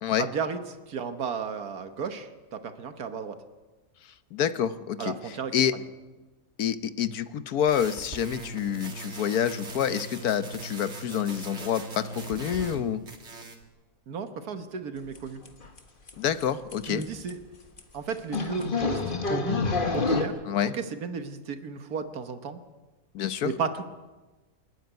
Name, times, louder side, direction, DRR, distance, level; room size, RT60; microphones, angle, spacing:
voice 1, 0.2-0.6 0.9-3.4 5.0-5.5 14.1-15.4 16.9-17.4 17.9-19.6 19.9-20.4 20.7-22.6 23.4-23.8, right 6 dB, 75° right, 8 dB, 1.6 m, -34 dB
voice 2, 4.3-5.8 6.6-13.0 16.2-17.0 20.5-20.8 23.1-23.5, left 9 dB, 75° left, 12 dB, 1.4 m, -28 dB
sound 1, 7.7-12.8 13.1-13.6, right 2 dB, 45° right, 2.3 m, -40 dB
sound 2, 15.1-15.2 15.5-15.8 16.1-16.2 16.4-16.5 16.7-16.8 17.0-17.3 17.8-17.9 18.3-20.2, left 3 dB, 35° left, 1.6 m, -27 dB
28.5 x 10.0 x 9.4 m, 1.2 s
omnidirectional pair, 1.6 m